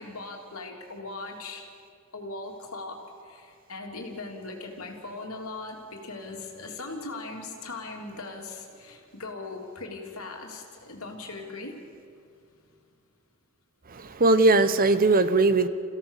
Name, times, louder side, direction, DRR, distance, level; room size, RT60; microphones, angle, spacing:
voice 1, 0.0-1.6 2.1-12.1, left 3 dB, 80° left, 1 dB, 3.3 m, -39 dB
voice 2, 13.9-15.7, right 2 dB, 45° right, 12 dB, 0.9 m, -20 dB
28.5 x 16.5 x 6.6 m, 2.3 s
head